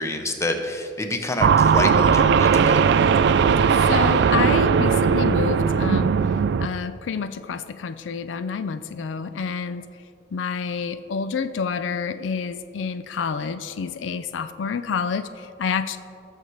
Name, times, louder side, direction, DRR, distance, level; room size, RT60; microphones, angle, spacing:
voice 1, 0.0-2.8, left 1 dB, 15° left, 5 dB, 0.7 m, -27 dB
sound 1, 1.4-6.7, right 6 dB, 65° right, 0.3 m, -18 dB
voice 2, 3.8-6.1 6.6-9.8 10.3-16.0, left 6 dB, 80° left, 11 dB, 0.4 m, -28 dB
18.0 x 6.6 x 3.1 m, 2.6 s
head